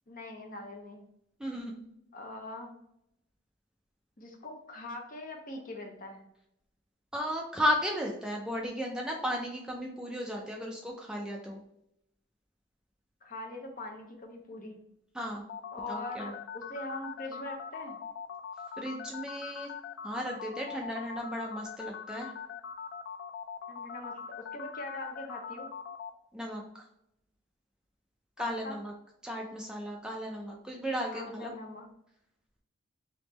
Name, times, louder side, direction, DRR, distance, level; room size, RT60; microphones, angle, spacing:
voice 1, 0.1-1.1 2.1-2.7 4.2-6.2 13.2-14.8 15.7-18.0 23.7-24.2 24.5-25.7 28.4-28.8 31.1-31.9, left 2 dB, 40° left, 2 dB, 0.7 m, -42 dB
voice 2, 1.4-1.8 7.1-11.6 15.1-15.4 15.9-16.3 18.8-19.7 20.0-22.3 26.3-26.8 28.4-28.9 29.2-31.5, equal, 5° right, -1 dB, 0.4 m, -35 dB
sound 1, 15.5-26.1, left 7 dB, 65° left, 0.3 m, -41 dB
3.5 x 3.0 x 2.9 m, 0.79 s
head